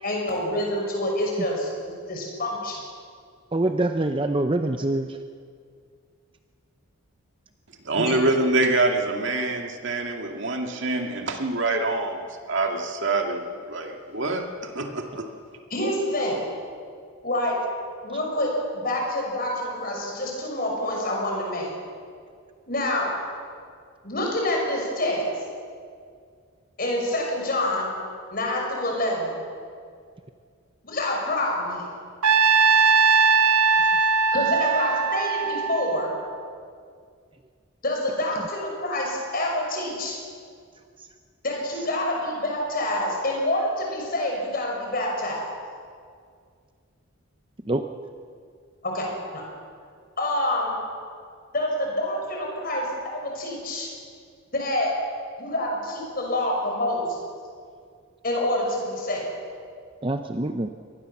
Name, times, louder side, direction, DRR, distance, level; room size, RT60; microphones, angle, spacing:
voice 1, 0.0-2.8 8.0-8.1 15.7-16.4 17.2-17.6 18.0-21.7 22.7-23.1 24.0-25.2 26.8-27.9 28.3-29.4 30.8-31.9 34.3-36.1 37.8-40.2 41.4-45.5 48.8-49.1 49.3-49.4 50.2-50.7 51.5-53.9 54.5-54.9 55.4-57.2 58.2-59.3, left 1 dB, 40° left, 0 dB, 6.1 m, -27 dB
voice 2, 3.5-5.2 47.7-47.8 60.0-60.7, right 2 dB, 25° right, 7 dB, 0.6 m, -25 dB
voice 3, 7.9-12.2 12.5-13.4 13.7-14.4 14.8-15.3, right 2 dB, 55° right, 3 dB, 2.2 m, -25 dB
Trumpet, 32.2-36.4, right 5 dB, 85° right, 0.8 m, -20 dB
24.5 x 19.0 x 7.3 m, 2.2 s
head